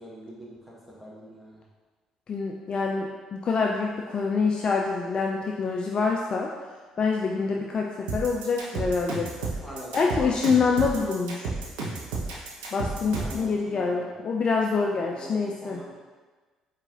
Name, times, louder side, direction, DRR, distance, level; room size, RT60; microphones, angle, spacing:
voice 1, 0.0-1.6 7.6-7.7 9.6-10.6 13.0-14.1 15.0-15.9, equal, ahead, -5 dB, 1.3 m, -43 dB
voice 2, 2.3-6.5 7.0-9.3 9.9-11.5 12.7-15.8, left 4 dB, 40° left, 0 dB, 0.3 m, -26 dB
sound 1, 8.1-13.4, right 3 dB, 65° right, 0.6 m, -32 dB
4.7 x 2.5 x 3.7 m, 1.4 s
figure-of-eight pair, 50°, 2 cm